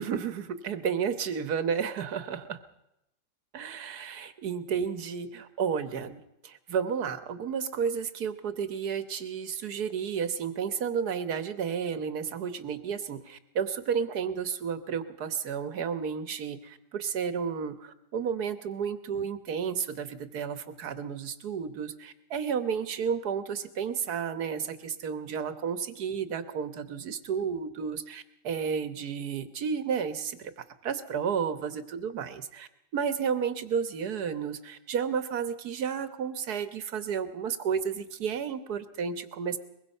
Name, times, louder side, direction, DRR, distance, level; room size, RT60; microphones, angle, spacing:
voice 1, 0.0-2.6 3.5-30.5 30.8-39.6, right 7 dB, 85° right, 12 dB, 1.7 m, -32 dB
23.5 x 21.5 x 5.5 m, 0.85 s
omnidirectional pair, 1.6 m